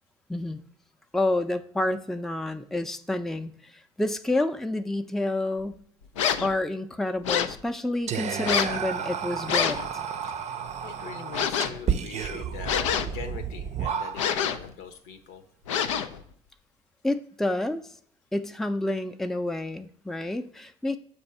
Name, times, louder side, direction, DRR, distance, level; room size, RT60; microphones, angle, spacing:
voice 1, 1.1-5.8 6.4-9.8 17.0-17.8 18.3-21.0, left 2 dB, ahead, 7 dB, 0.5 m, -29 dB
sound 1, 6.2-6.5 7.2-7.6 8.4-8.8 9.5-9.9 11.3-11.8 12.6-13.3 14.1-14.7 15.7-16.2, left 8 dB, 90° left, 0.4 m, -26 dB
Whispering, 8.1-14.5, right 7 dB, 45° right, 0.6 m, -32 dB
voice 2, 10.8-15.4, left 6 dB, 75° left, 8 dB, 0.8 m, -42 dB
6.9 x 2.6 x 5.4 m, 0.62 s
hypercardioid pair, 60°, 16 cm